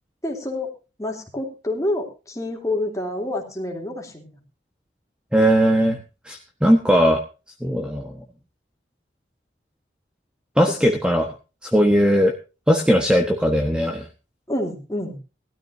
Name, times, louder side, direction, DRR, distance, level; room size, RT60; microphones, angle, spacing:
voice 1, 0.2-0.7 1.0-4.4 10.6-10.8 14.5-15.2, left 1 dB, 15° left, 0 dB, 3.1 m, -28 dB
voice 2, 5.3-6.0 6.2-7.2 7.6-8.1 10.6-11.3 11.6-12.3 12.7-14.1, equal, 5° right, 3 dB, 1.3 m, -18 dB
18.5 x 13.0 x 2.7 m, 0.31 s
head